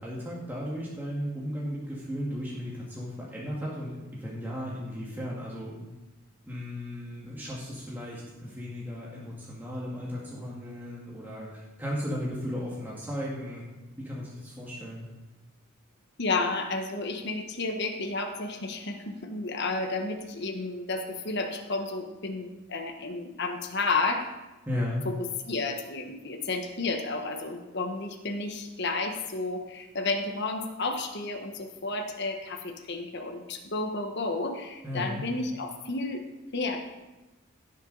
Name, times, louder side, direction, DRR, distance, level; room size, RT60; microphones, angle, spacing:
voice 1, 0.0-5.9 6.5-13.6 14.0-15.1 24.7-25.0 34.8-35.2, equal, 10° right, -6 dB, 1.8 m, -35 dB
voice 2, 16.2-24.3 25.0-25.1 25.4-36.2 36.5-36.9, left 3 dB, 55° left, 4 dB, 1.3 m, -32 dB
16.0 x 7.0 x 4.0 m, 1.1 s
head